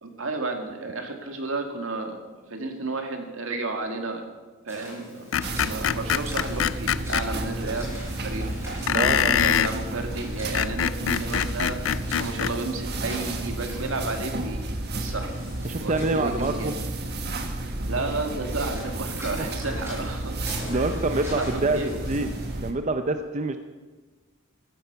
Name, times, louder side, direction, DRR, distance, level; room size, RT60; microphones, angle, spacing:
voice 1, 0.0-4.2 4.7-5.3 5.6-8.5 8.9-11.8 12.1-14.6 15.0-15.4 15.8-16.7 17.6-20.4 20.7-21.0 21.3-22.0, right 3 dB, 75° right, 4 dB, 2.1 m, -32 dB
sound 1, 4.7-22.5, equal, 15° right, 6.6 m, -43 dB
Screech, 5.3-7.3 8.9-9.7 10.4-12.6, left 9 dB, 65° left, 0.4 m, -24 dB
sound 2, 5.4-22.7, right 1 dB, 50° right, 1.5 m, -32 dB
voice 2, 8.9-9.4 15.6-16.8 17.4-17.5 19.4-19.5 20.7-21.8 22.1-22.3 22.6-23.6, right 2 dB, 35° right, 7 dB, 0.6 m, -26 dB
14.5 x 11.5 x 6.9 m, 1.3 s
head